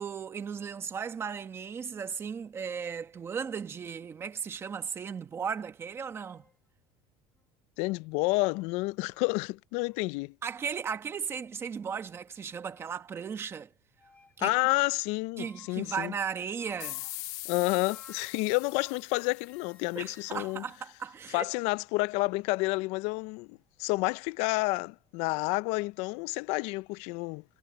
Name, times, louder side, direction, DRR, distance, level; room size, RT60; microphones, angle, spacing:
voice 1, 0.0-6.5 10.4-13.7 14.4-14.6 15.4-17.1 20.0-21.4, right 6 dB, 20° right, 1.1 m, -36 dB
sound 1, 5.8-5.9 6.2-6.6 7.4-7.5 8.7-9.5 9.9-10.1 10.5-10.7 11.3-11.6 12.2-13.0 14.0-14.4 15.4-16.0 16.6-19.1 19.3-21.6, left 3 dB, 10° left, 2.0 m, -59 dB
voice 2, 7.8-10.3 14.4-16.1 17.5-20.6 21.3-27.4, left 24 dB, 60° left, 0.4 m, -30 dB
sound 2, 16.8-20.1, left 20 dB, 90° left, 1.1 m, -42 dB
cardioid pair, 180°, 12 cm